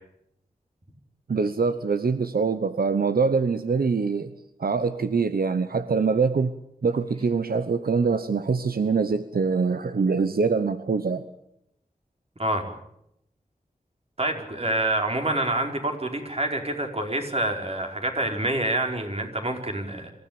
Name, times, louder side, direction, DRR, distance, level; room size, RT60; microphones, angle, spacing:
voice 1, 1.3-4.3 4.6-6.5 6.8-11.2, right 5 dB, 85° right, 11 dB, 1.0 m, -24 dB
voice 2, 12.4-12.7 14.2-20.1, right 1 dB, 45° right, 3 dB, 4.9 m, -27 dB
26.5 x 16.0 x 8.9 m, 0.79 s
wide cardioid pair, 60°, 15 cm